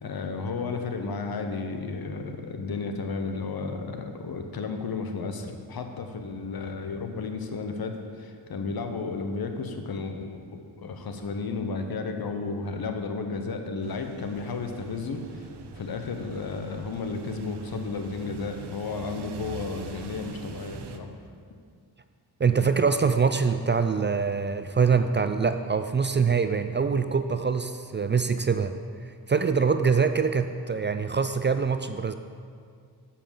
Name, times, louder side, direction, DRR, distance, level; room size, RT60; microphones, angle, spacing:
voice 1, 0.0-15.5 15.8-21.1, left 4 dB, 65° left, 5 dB, 1.0 m, -33 dB
sound 1, 13.8-21.0, right 7 dB, 85° right, 0.7 m, -44 dB
voice 2, 22.4-28.7 29.1-32.1, right 5 dB, 30° right, 9 dB, 0.4 m, -24 dB
7.0 x 5.7 x 6.7 m, 2.1 s
cardioid pair, 65°, 40 cm